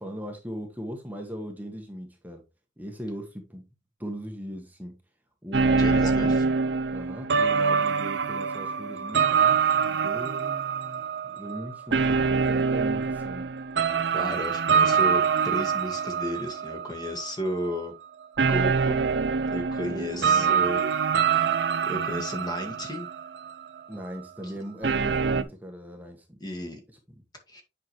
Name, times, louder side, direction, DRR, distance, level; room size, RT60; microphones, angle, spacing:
voice 1, 0.0-2.4 2.8-3.7 4.0-4.9 5.4-6.4 6.9-13.5 14.2-14.4 19.8-20.7 23.9-26.4 26.9-27.0, equal, 10° right, 1.1 m, -38 dB
sound 1, 5.5-17.3 17.6-17.8 18.4-23.8 24.2-24.3 24.8-25.4, right 5 dB, 70° right, 0.6 m, -25 dB
voice 2, 5.8-6.3 14.1-17.9 18.5-19.1 19.5-20.9 21.4-21.5 21.8-23.1 26.4-26.8 27.5-27.6, equal, 25° left, 1.8 m, -33 dB
8.3 x 5.8 x 3.1 m
head